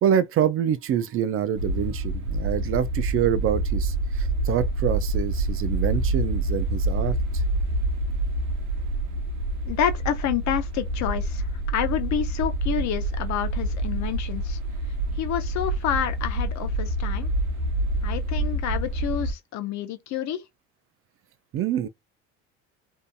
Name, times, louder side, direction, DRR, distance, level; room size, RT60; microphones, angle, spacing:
voice 1, 0.0-7.4 21.5-21.9, right 9 dB, 40° right, 0.4 m, -26 dB
sound 1, 1.6-19.3, right 1 dB, 70° right, 0.8 m, -27 dB
voice 2, 9.7-14.6 15.2-17.3 18.0-20.4, left 10 dB, 55° left, 0.7 m, -28 dB
2.7 x 2.5 x 2.2 m
supercardioid pair, 85°, 33 cm